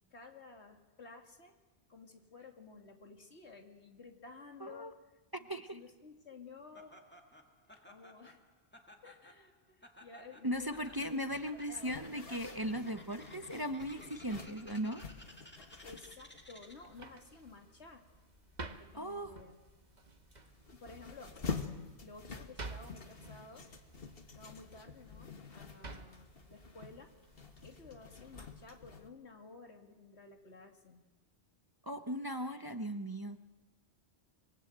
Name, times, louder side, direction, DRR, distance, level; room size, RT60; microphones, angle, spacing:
voice 1, 0.1-1.5 1.9-5.0 5.4-7.0 7.8-8.4 9.0-12.2 15.8-18.0 18.6-19.6 20.7-21.4 22.0-23.7 24.3-27.1 27.6-31.0 32.4-32.7, left 3 dB, 70° left, 4 dB, 2.7 m, -54 dB
voice 2, 5.5-5.8 10.4-15.0 18.9-19.3 31.8-33.4, equal, 20° right, 8 dB, 0.8 m, -38 dB
Laughter, 6.7-17.0, left 1 dB, 10° left, 2.0 m, -57 dB
Zipper (clothing), 10.5-29.1, left 5 dB, 55° left, 1.9 m, -48 dB
sound 1, 16.6-27.8, right 3 dB, 40° right, 1.5 m, -52 dB
26.0 x 23.5 x 8.0 m, 1.2 s
omnidirectional pair, 1.2 m